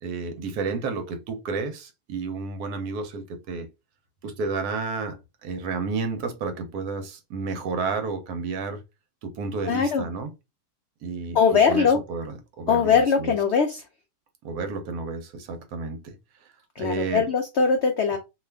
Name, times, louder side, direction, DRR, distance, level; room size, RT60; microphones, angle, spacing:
voice 1, 0.0-3.7 4.2-8.8 9.2-10.3 11.0-13.4 14.4-16.2 16.8-17.2, right 4 dB, 75° right, 1.2 m, -31 dB
voice 2, 9.7-10.1 11.3-12.0 12.7-13.8 16.8-18.2, left 6 dB, 90° left, 0.5 m, -21 dB
2.7 x 2.3 x 3.3 m
omnidirectional pair, 1.7 m